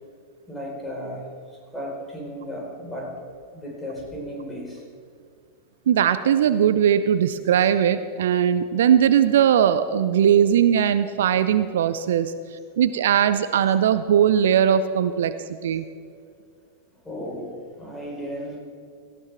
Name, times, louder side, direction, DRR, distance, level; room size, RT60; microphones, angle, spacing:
voice 1, 0.5-3.2 3.5-4.8 5.9-6.0 7.6-7.7 17.0-18.6, equal, 10° left, -2 dB, 4.6 m, -35 dB
voice 2, 5.9-12.3 12.8-15.3 15.6-15.8, right 9 dB, 60° right, 13 dB, 0.5 m, -19 dB
18.0 x 16.0 x 3.5 m, 2.3 s
figure-of-eight pair, 90°, 0 cm